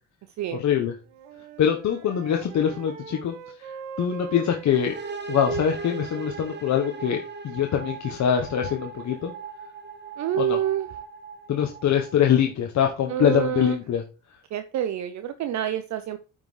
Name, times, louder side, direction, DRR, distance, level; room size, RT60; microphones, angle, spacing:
voice 1, 0.5-0.9 1.6-4.9 5.3-9.3 10.4-10.6 11.5-14.0, left 9 dB, 55° left, 3 dB, 1.2 m, -24 dB
Wind instrument woodwind instrument, 0.8-7.3, right 6 dB, 90° right, 0.9 m, -43 dB
sound 1, 4.7-12.4, right 5 dB, 30° right, 1.3 m, -38 dB
voice 2, 10.2-10.9 13.1-13.8 14.5-16.2, right 11 dB, 55° right, 10 dB, 0.7 m, -27 dB
8.9 x 5.7 x 3.3 m, 0.33 s
hypercardioid pair, 65°, 34 cm